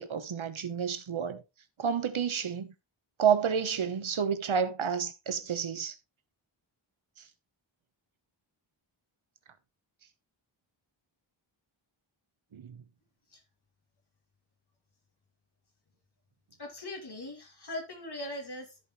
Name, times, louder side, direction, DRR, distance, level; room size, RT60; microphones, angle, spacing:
voice 1, 0.0-1.4 1.8-2.7 3.2-5.9 12.5-12.8, right 7 dB, 80° right, 1.1 m, -30 dB
voice 2, 16.6-18.8, left 1 dB, 55° left, 2.9 m, -40 dB
13.5 x 5.2 x 3.1 m
wide cardioid pair, 100°, 48 cm